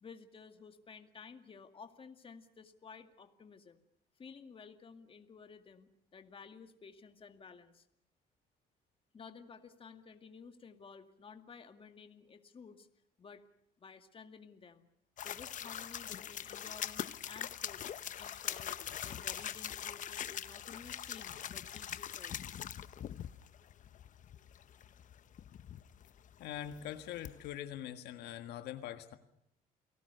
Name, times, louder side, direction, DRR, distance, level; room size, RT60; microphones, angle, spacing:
voice 1, 0.0-3.8 4.2-7.9 9.1-12.9 13.2-13.4 13.8-14.9 15.2-17.8 18.2-18.8 19.0-22.4, left 5 dB, 30° left, 7 dB, 2.1 m, -54 dB
sound 1, 15.2-27.5, left 10 dB, 50° left, 0.9 m, -43 dB
voice 2, 26.4-29.2, left 11 dB, 80° left, 8 dB, 1.7 m, -43 dB
29.5 x 18.5 x 6.8 m, 0.77 s
cardioid pair, 110°, 17 cm